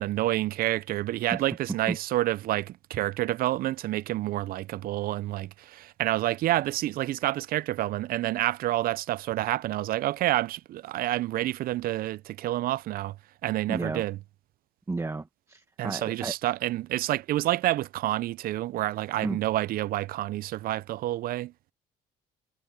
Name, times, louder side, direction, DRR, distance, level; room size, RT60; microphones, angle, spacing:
voice 1, 0.0-13.2 13.4-14.2 15.8-21.5, right 15 dB, 60° right, 0.4 m, -28 dB
voice 2, 13.7-14.0 14.9-16.3 19.2-19.4, right 3 dB, 15° right, 1.4 m, -32 dB
cardioid pair, 110°, 17 cm